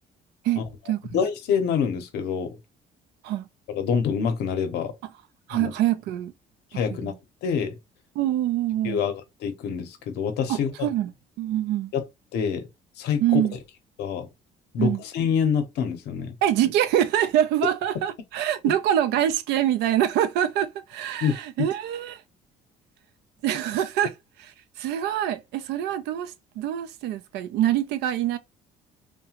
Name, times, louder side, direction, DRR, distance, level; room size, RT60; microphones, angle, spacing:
voice 1, 0.4-1.2 3.2-3.4 5.5-6.3 6.9-7.1 8.2-9.0 10.5-11.1 11.4-11.9 13.2-13.6 14.8-15.0 16.4-22.2 23.4-24.1 24.4-24.5 24.8-28.4, right 11 dB, 85° right, 0.4 m, -25 dB
voice 2, 1.1-2.6 3.7-4.9 5.5-5.7 6.7-7.1 7.4-7.8 8.8-10.7 11.9-12.0 12.3-12.7 13.0-13.4 14.0-14.3 14.7-16.3 21.2-21.7, left 7 dB, 80° left, 0.7 m, -26 dB
2.7 x 2.1 x 2.8 m
cardioid pair, 110°, 17 cm